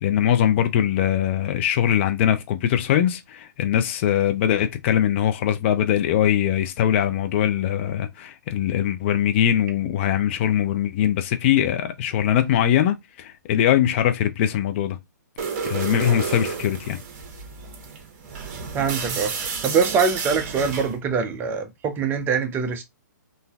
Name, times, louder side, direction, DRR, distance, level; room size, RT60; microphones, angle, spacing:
voice 1, 0.0-15.0 15.6-17.0, left 10 dB, 40° left, 0.5 m, -21 dB
sound 1, 15.4-21.0, right 5 dB, 40° right, 1.0 m, -31 dB
voice 2, 18.7-19.3 19.6-22.8, right 5 dB, 20° right, 0.5 m, -23 dB
3.7 x 2.6 x 2.3 m
hypercardioid pair, 130°, 10 cm